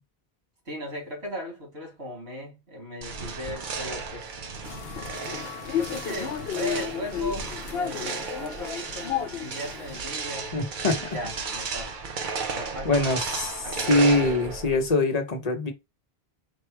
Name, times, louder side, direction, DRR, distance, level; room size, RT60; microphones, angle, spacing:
voice 1, 0.7-4.3 5.2-10.5 11.1-12.1 12.5-13.2 13.6-14.0, equal, 85° right, 2.7 m, -37 dB
sound 1, 3.0-14.9, right 4 dB, 55° right, 0.8 m, -34 dB
sound 2, 4.6-10.0, left 9 dB, 70° left, 0.8 m, -33 dB
voice 2, 10.5-11.2 12.8-15.7, left 2 dB, 40° left, 1.1 m, -24 dB
4.5 x 2.3 x 4.5 m
omnidirectional pair, 1.1 m